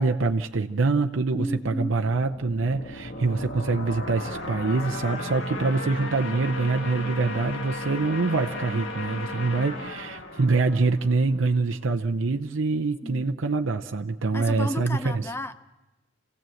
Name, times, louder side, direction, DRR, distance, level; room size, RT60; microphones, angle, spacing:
voice 1, 0.0-15.3, right 3 dB, 75° right, 5 dB, 0.7 m, -25 dB
voice 2, 1.3-2.0 13.0-13.2 14.3-15.5, left 1 dB, 10° left, 9 dB, 0.7 m, -33 dB
sound 1, 2.3-11.5, left 2 dB, 70° left, 1.6 m, -35 dB
28.0 x 16.5 x 7.8 m, 1.1 s
head